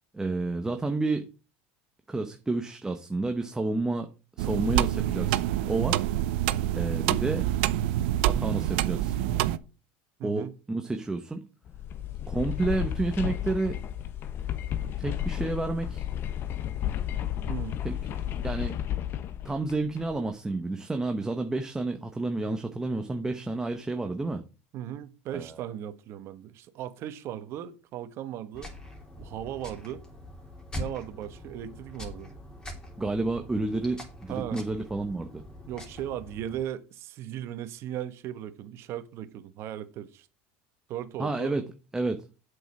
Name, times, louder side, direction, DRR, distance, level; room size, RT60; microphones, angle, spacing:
voice 1, 0.1-1.2 2.1-4.1 4.4-6.0 6.7-7.5 8.3-9.1 10.2-11.5 12.3-13.8 15.0-16.0 17.8-18.0 18.4-18.8 19.4-24.4 25.3-25.5 33.0-35.4 41.2-41.6 41.9-42.2, right 2 dB, 10° right, 1.0 m, -30 dB
sound 1, 4.4-9.6, right 13 dB, 75° right, 0.7 m, -26 dB
voice 2, 10.2-10.5 17.5-17.7 24.7-28.7 29.2-30.0 30.7-32.3 34.3-34.6 35.7-40.3 40.9-41.5, right 11 dB, 50° right, 1.3 m, -37 dB
sound 2, 11.7-20.2, left 11 dB, 40° left, 1.0 m, -32 dB
sound 3, 28.5-36.6, left 1 dB, 15° left, 3.4 m, -43 dB
8.0 x 6.5 x 6.1 m
supercardioid pair, 120°, 6 cm